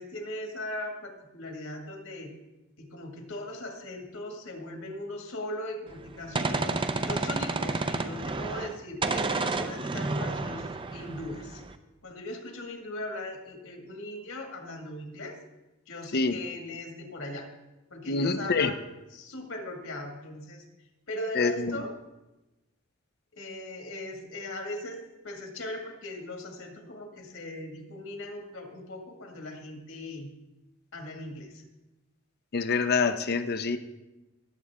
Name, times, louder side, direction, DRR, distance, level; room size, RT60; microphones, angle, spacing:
voice 1, 0.0-2.3 2.8-11.6 12.0-15.4 15.9-17.5 17.9-18.8 19.1-20.6 21.1-21.9 23.3-30.3 30.9-31.6, left 1 dB, 75° left, 2 dB, 2.2 m, -39 dB
Gunshot gunfire, 5.9-8.8 9.0-11.7, right 3 dB, 25° right, 0.6 m, -30 dB
voice 2, 18.1-18.7 21.4-21.8 32.5-33.8, left 4 dB, 50° left, 10 dB, 0.6 m, -26 dB
19.5 x 7.7 x 3.6 m, 1.0 s
head